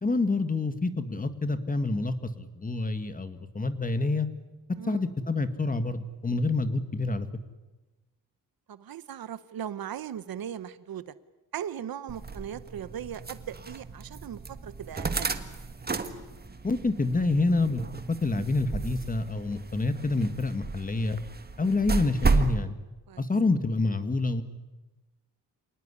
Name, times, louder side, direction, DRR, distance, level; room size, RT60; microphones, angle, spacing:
voice 1, 0.0-4.3 4.8-7.3 16.6-17.8 18.2-21.2 21.6-22.8 23.2-24.4, left 3 dB, 20° left, 10 dB, 1.9 m, -27 dB
voice 2, 8.7-11.1 11.5-15.4 23.1-23.2, right 9 dB, 70° right, 15 dB, 1.1 m, -38 dB
sound 1, 12.1-22.6, right 4 dB, 25° right, 1.6 m, -33 dB
27.0 x 19.0 x 9.9 m, 1.1 s
cardioid pair, 110°, 36 cm